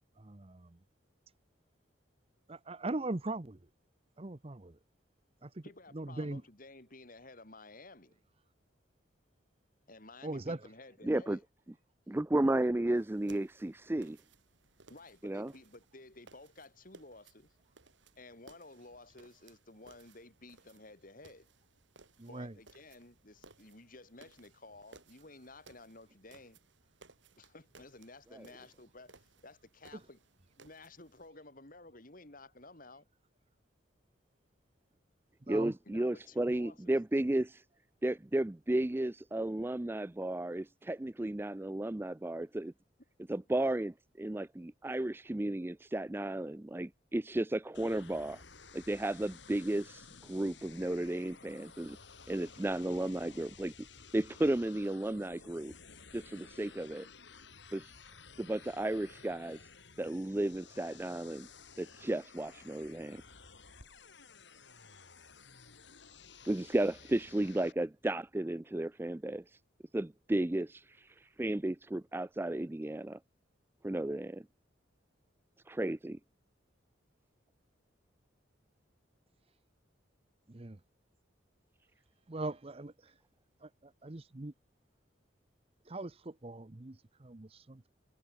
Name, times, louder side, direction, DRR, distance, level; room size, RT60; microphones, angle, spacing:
voice 1, 0.2-0.8 2.5-3.6 4.2-4.8 5.4-5.6 5.9-6.4 10.2-10.6 22.2-22.5 35.5-35.7 80.5-80.8 82.3-83.1 83.6-84.5 85.9-87.9, right 2 dB, 30° right, 0.8 m, -40 dB
voice 2, 5.6-8.2 9.9-11.4 14.9-17.5 18.2-21.5 22.3-26.6 27.4-30.2 30.6-33.1 35.8-37.0 43.3-43.4, left 2 dB, 45° left, 3.3 m, -54 dB
voice 3, 11.0-11.4 12.1-14.2 15.2-15.5 28.3-28.4 35.5-37.6 38.0-42.7 43.3-48.4 48.7-52.0 52.3-53.7 54.1-55.7 56.1-57.1 57.7-57.9 58.4-59.6 60.0-61.5 61.8-63.2 66.4-69.4 69.9-73.2 73.8-74.4 75.7-76.2, right 1 dB, 10° right, 0.4 m, -33 dB
sound 1, 12.9-31.3, right 3 dB, 70° right, 4.3 m, -62 dB
sound 2, 47.7-67.7, left 5 dB, 65° left, 6.0 m, -55 dB
head